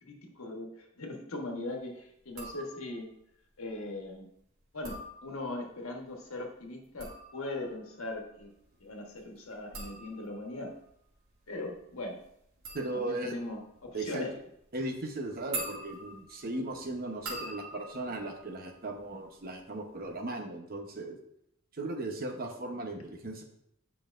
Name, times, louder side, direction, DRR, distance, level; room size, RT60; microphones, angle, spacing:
voice 1, 0.0-3.1 3.6-4.3 4.7-8.5 8.8-10.7 11.5-12.2 12.9-14.3, left 2 dB, 90° left, 1 dB, 1.3 m, -40 dB
sound 1, 2.3-3.1 4.6-5.7 6.7-19.4 19.7-20.2, right 2 dB, 80° right, 2.3 m, -45 dB
voice 2, 12.7-13.3 13.9-14.2 14.7-21.2 21.7-23.4, right 2 dB, 45° right, 3 dB, 0.9 m, -37 dB
8.8 x 5.5 x 2.6 m, 0.75 s
head